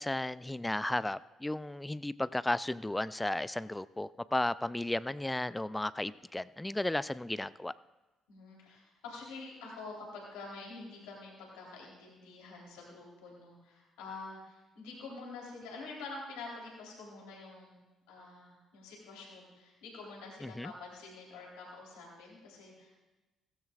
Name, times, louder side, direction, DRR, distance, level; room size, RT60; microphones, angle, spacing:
voice 1, 0.0-7.7 20.4-20.7, left 1 dB, 10° left, 18 dB, 0.4 m, -34 dB
voice 2, 8.3-17.8 18.1-22.9, left 3 dB, 75° left, -3 dB, 3.5 m, -47 dB
16.5 x 15.5 x 2.5 m, 1.1 s
hypercardioid pair, 50°, 0 cm